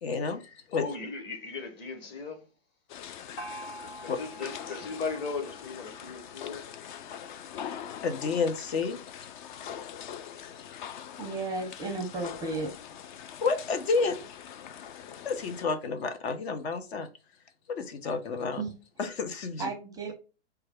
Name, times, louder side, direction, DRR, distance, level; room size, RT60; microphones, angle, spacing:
voice 1, 0.0-0.9 4.1-4.2 8.0-9.0 13.4-14.2 15.1-17.1 17.7-18.6 19.0-19.7, left 4 dB, 60° left, 0.8 m, -30 dB
voice 2, 0.7-2.4 3.8-6.7, left 4 dB, 30° left, 1.1 m, -37 dB
sound 1, 2.9-15.7, left 9 dB, 45° left, 0.4 m, -43 dB
Gong, 3.4-6.9, right 1 dB, 80° left, 1.5 m, -46 dB
voice 3, 11.2-12.7 18.6-18.7 19.6-20.1, right 3 dB, 10° right, 0.6 m, -33 dB
4.5 x 2.3 x 3.4 m
hypercardioid pair, 120°, 35 cm